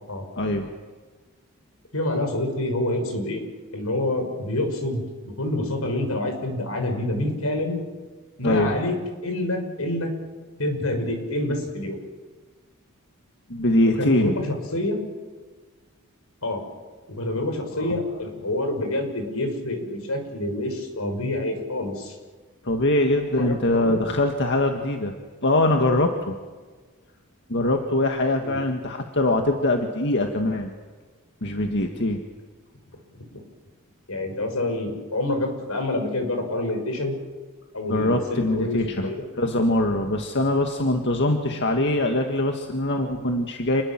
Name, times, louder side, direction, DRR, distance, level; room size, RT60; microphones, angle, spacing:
voice 1, 0.4-0.7 8.4-8.7 13.5-14.4 17.7-17.8 22.6-25.1 25.4-26.4 27.5-30.7 31.4-32.2 37.9-39.1 39.4-43.8, left 1 dB, 55° left, 3 dB, 2.0 m, -23 dB
voice 2, 1.9-3.4 3.7-7.8 8.4-9.0 9.2-10.1 10.6-12.0 13.8-15.0 16.4-16.6 17.1-22.1 23.3-24.0 28.4-28.6 34.1-37.2 37.7-39.2, left 1 dB, 80° left, 5 dB, 6.1 m, -27 dB
29.0 x 21.0 x 7.7 m, 1.4 s
head